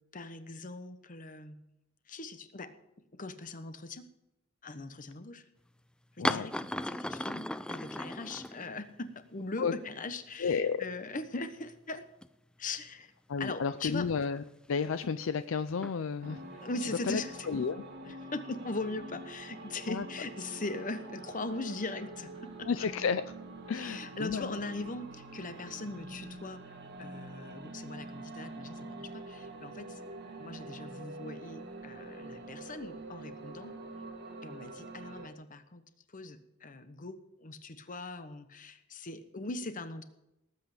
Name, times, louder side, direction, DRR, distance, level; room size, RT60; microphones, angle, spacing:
voice 1, 0.1-1.6 2.1-2.7 3.1-4.0 4.6-5.4 6.2-12.0 12.6-13.1 13.4-14.1 16.6-17.3 18.1-22.9 23.7-26.7 27.0-30.0 30.4-33.7 34.4-35.8 36.1-40.0, left 3 dB, 40° left, 10 dB, 1.1 m, -40 dB
sound 1, 6.2-9.1 9.4-9.5 10.5-10.6 10.8-11.7 12.2-12.3 13.8-15.1 15.7-16.0 17.0-17.7, left 1 dB, 5° left, 0.4 m, -37 dB
voice 2, 10.4-10.9 13.3-16.4 17.1-17.8 19.9-20.1 22.6-23.2 23.7-24.6, left 5 dB, 70° left, 12 dB, 0.5 m, -32 dB
sound 2, 16.2-35.3, right 2 dB, 55° right, 1.7 m, -46 dB
18.5 x 8.3 x 5.0 m, 0.88 s
head